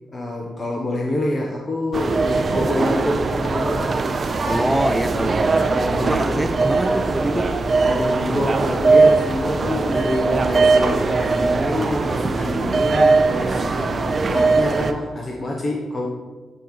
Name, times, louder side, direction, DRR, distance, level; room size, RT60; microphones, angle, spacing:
voice 1, 0.1-3.9 5.8-6.5 7.8-16.1, left 1 dB, 40° left, -1 dB, 1.0 m, -26 dB
Ben Shewmaker - Walmart Ambience, 1.9-14.9, right 3 dB, 50° right, 0.6 m, -20 dB
voice 2, 4.4-7.5 14.2-14.4, right 1 dB, 5° right, 8 dB, 0.7 m, -25 dB
9.2 x 3.1 x 5.2 m, 1.3 s
hypercardioid pair, 45°, 0 cm